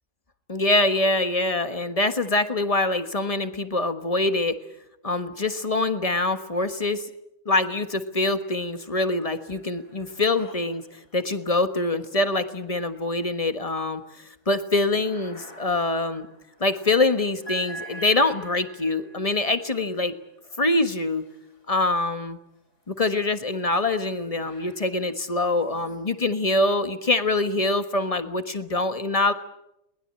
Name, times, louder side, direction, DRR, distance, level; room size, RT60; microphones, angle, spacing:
voice 1, 0.5-4.6 5.0-7.0 7.4-10.8 11.1-14.0 14.5-16.3 16.6-20.1 20.6-21.2 21.7-22.4 22.9-29.3, left 2 dB, 25° left, 9 dB, 1.3 m, -24 dB
sound 1, 7.8-8.5 8.9-22.0 22.7-27.2, right 2 dB, 45° left, 3.7 m, -48 dB
22.0 x 20.0 x 8.8 m, 0.85 s
omnidirectional pair, 1.8 m